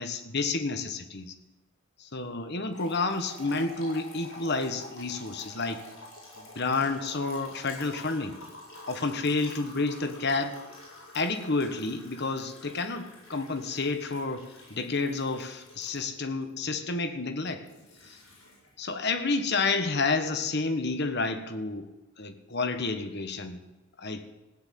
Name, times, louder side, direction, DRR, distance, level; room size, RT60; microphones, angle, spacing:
voice 1, 0.0-1.3 2.0-5.8 6.5-8.3 8.9-10.6 11.1-17.7 18.1-18.2 18.8-21.9 22.2-23.6 24.0-24.2, left 3 dB, 50° left, 9 dB, 1.3 m, -30 dB
sound 1, 2.7-16.5 17.5-18.9, left 1 dB, 75° left, 7.4 m, -48 dB
16.0 x 9.9 x 8.5 m, 1.0 s
head